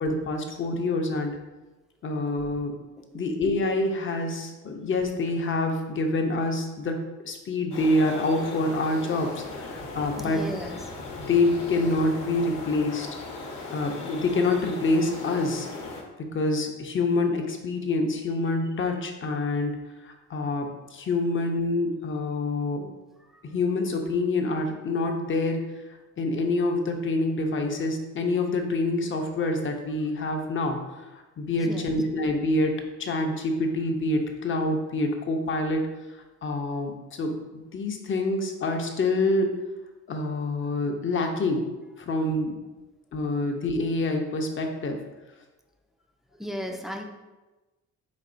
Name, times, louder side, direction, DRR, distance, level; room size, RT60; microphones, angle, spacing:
voice 1, 0.0-1.3 2.0-2.7 3.1-10.4 11.2-13.1 13.7-15.7 16.2-19.8 20.0-22.9 23.4-25.6 26.2-30.8 31.1-35.9 36.4-39.5 40.1-41.7 42.0-42.6 43.1-45.0, left 2 dB, 40° left, 4 dB, 0.7 m, -26 dB
sound 1, 7.7-16.0, left 3 dB, 85° left, 0.9 m, -38 dB
voice 2, 10.2-10.8 23.3-23.4 31.6-31.9 46.3-47.0, equal, ahead, 3 dB, 0.4 m, -35 dB
4.1 x 4.0 x 2.5 m, 1.1 s
cardioid pair, 90°, 30 cm